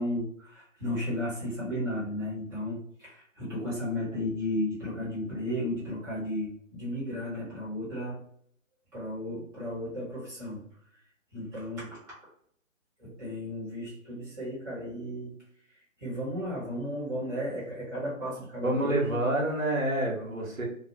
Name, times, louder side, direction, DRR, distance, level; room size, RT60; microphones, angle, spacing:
voice 1, 0.0-8.2 8.9-10.7 10.9-11.0 11.3-12.0 13.0-19.2 20.1-20.7, left 1 dB, 15° right, -10 dB, 1.3 m, -34 dB
voice 2, 18.6-20.7, right 1 dB, 85° right, -1 dB, 1.2 m, -28 dB
2.7 x 2.4 x 2.7 m, 0.64 s
figure-of-eight pair, 145°, 40 cm